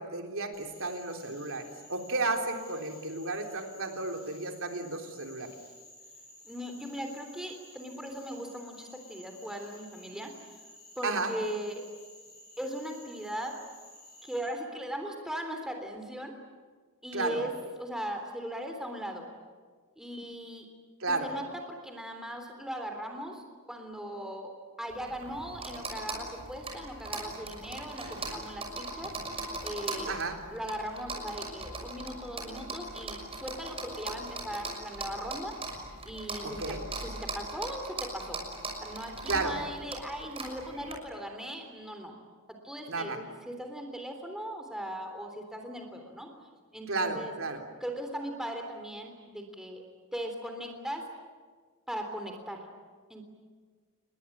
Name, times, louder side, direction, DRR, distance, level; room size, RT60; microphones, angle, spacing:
voice 1, 0.0-5.5 11.0-11.3 17.1-17.4 21.0-21.3 30.1-30.3 36.4-36.8 39.3-39.6 42.9-43.2 46.9-47.6, right 3 dB, 65° right, 4 dB, 3.8 m, -33 dB
Frog, 0.5-14.4, left 1 dB, 45° left, 5.8 m, -54 dB
voice 2, 6.4-10.6 11.0-11.8 12.6-13.6 14.2-16.4 17.0-17.5 17.8-19.3 20.0-20.7 21.1-30.2 30.5-35.6 36.0-38.4 38.8-42.2 42.5-46.3 46.7-47.3 47.8-49.8 50.1-51.1 51.9-52.7 53.1-53.2, equal, ahead, 3 dB, 3.5 m, -39 dB
sound 1, 24.9-40.9, right 2 dB, 25° right, 6.2 m, -40 dB
29.0 x 22.0 x 8.8 m, 1.5 s
head